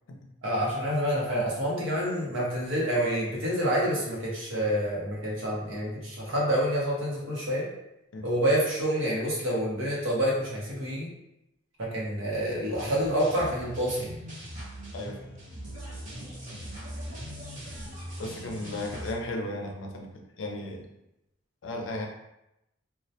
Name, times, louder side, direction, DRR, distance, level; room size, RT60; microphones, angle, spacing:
voice 1, 0.4-7.7 8.2-11.1 11.8-14.1, equal, 90° right, -4 dB, 0.8 m, -28 dB
sound 1, 12.7-19.1, equal, 40° right, 0.8 m, -40 dB
voice 2, 18.2-20.1 20.4-20.9 21.6-22.1, left 1 dB, 70° left, 2 dB, 0.4 m, -35 dB
2.2 x 2.1 x 2.7 m, 0.87 s
head